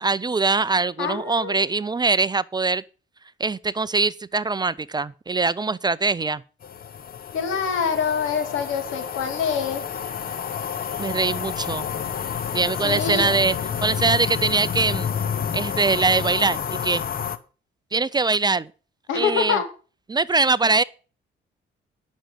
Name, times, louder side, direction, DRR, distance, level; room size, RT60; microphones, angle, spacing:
voice 1, 0.0-2.8 3.4-6.4 11.0-11.9 12.5-13.6 13.8-15.1 15.5-17.0 17.9-18.7 19.1-19.6 20.1-20.8, right 3 dB, 20° right, 0.4 m, -22 dB
voice 2, 1.0-1.7 7.3-9.8 12.8-13.3 19.1-19.7, left 6 dB, 85° left, 2.6 m, -25 dB
sound 1, 6.6-17.4, left 7 dB, 45° left, 1.0 m, -29 dB
10.0 x 6.3 x 7.9 m
cardioid pair, 90°, 20 cm